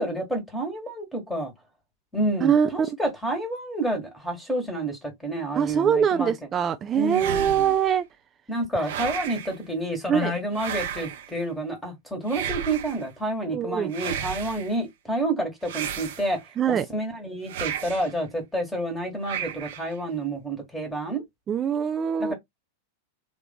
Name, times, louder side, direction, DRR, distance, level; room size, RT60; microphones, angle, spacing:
voice 1, 0.0-1.5 2.1-6.3 6.9-7.7 8.5-16.4 16.7-21.2 22.2-22.3, right 1 dB, 5° left, 1.3 m, -29 dB
voice 2, 5.5-8.1 10.1-10.3 13.5-13.9 16.6-16.9 21.5-22.3, right 8 dB, 25° right, 0.3 m, -23 dB
sound 1, 7.1-7.9 8.8-9.6 10.5-11.3 12.3-13.1 13.9-14.7 15.6-16.5 17.5-18.1 19.2-19.9, right 9 dB, 55° right, 0.7 m, -33 dB
3.3 x 2.6 x 3.4 m
figure-of-eight pair, 90°, 0 cm